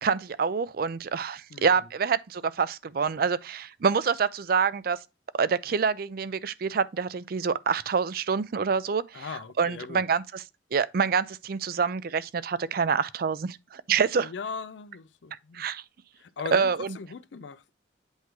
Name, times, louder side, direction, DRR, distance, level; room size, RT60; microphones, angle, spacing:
voice 1, 0.0-5.0 5.3-9.3 9.6-10.4 10.7-14.3 15.5-15.8 16.5-17.0, right 6 dB, 55° right, 0.4 m, -26 dB
voice 2, 1.5-1.8 9.1-10.0 14.2-15.7 16.2-17.7, left 5 dB, 80° left, 0.5 m, -39 dB
8.1 x 3.1 x 4.6 m
head